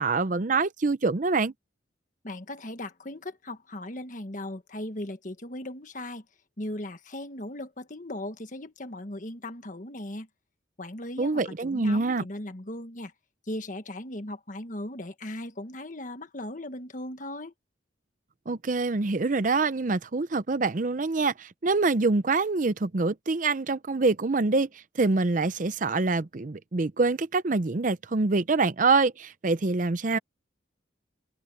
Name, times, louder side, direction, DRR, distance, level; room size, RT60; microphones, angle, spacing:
voice 1, 0.0-1.5 11.2-12.2 18.5-24.7 24.9-30.2, right 3 dB, 45° right, 0.6 m, -25 dB
voice 2, 2.2-6.2 6.6-10.3 10.8-13.1 13.5-17.5, left 1 dB, 45° left, 1.5 m, -38 dB
head